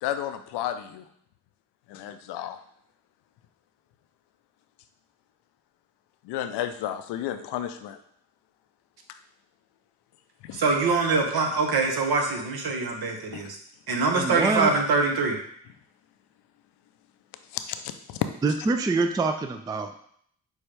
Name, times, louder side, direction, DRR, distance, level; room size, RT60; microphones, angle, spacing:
voice 1, 0.0-1.0 1.9-2.6 6.2-8.0 10.4-10.6 13.3-13.5 17.5-17.8 18.1-18.2, left 11 dB, 75° left, 9 dB, 0.5 m, -32 dB
voice 2, 10.5-13.6 13.9-15.4, right 4 dB, 60° right, 3 dB, 1.0 m, -24 dB
voice 3, 14.1-14.7 18.4-19.9, right 3 dB, 10° right, 7 dB, 0.3 m, -25 dB
6.2 x 2.3 x 3.3 m, 0.65 s
hypercardioid pair, 40°, 41 cm